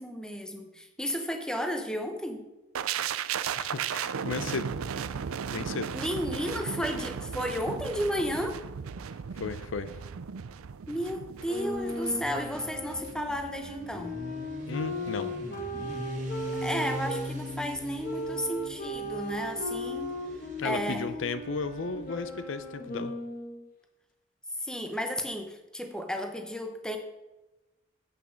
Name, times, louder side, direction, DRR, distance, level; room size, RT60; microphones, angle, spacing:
voice 1, 0.0-2.4 5.9-8.6 10.9-14.2 16.6-20.1 20.6-21.1 24.6-27.0, equal, 5° left, 5 dB, 0.8 m, -33 dB
sound 1, 2.7-12.6 12.9-13.1, right 7 dB, 85° right, 0.5 m, -36 dB
voice 2, 3.6-4.7 5.5-5.9 9.4-9.9 14.7-15.3 20.6-23.1, left 4 dB, 65° left, 12 dB, 0.6 m, -34 dB
Motorcycle, 11.1-22.8, left 1 dB, 35° right, 1.8 m, -42 dB
sound 2, 11.5-17.3 18.0-23.6, left 1 dB, 40° left, 1.2 m, -37 dB
8.4 x 6.8 x 6.3 m, 1.0 s
head